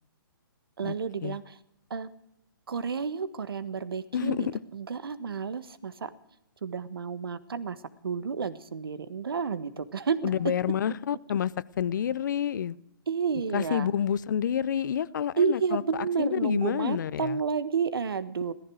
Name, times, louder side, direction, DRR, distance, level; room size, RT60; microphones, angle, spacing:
voice 1, 0.8-1.6 1.9-2.1 2.7-6.1 6.6-7.8 8.0-10.4 13.1-13.9 15.4-18.5, right 6 dB, 80° right, 1.4 m, -31 dB
voice 2, 4.1-4.5 10.2-12.8 13.5-17.4, left 9 dB, 55° left, 0.7 m, -28 dB
15.5 x 14.5 x 6.3 m
hypercardioid pair, 155°, 12 cm